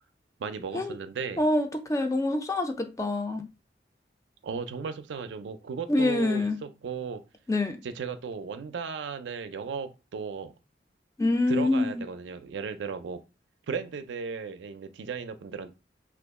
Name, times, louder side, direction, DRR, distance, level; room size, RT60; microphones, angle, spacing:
voice 1, 0.4-1.4 4.4-7.2 7.8-10.5 11.5-13.2 13.7-15.7, right 5 dB, 90° right, 0.4 m, -35 dB
voice 2, 1.4-3.5 5.9-6.6 7.5-7.8 11.2-12.0, left 2 dB, 15° left, 0.4 m, -26 dB
2.9 x 2.4 x 3.5 m
head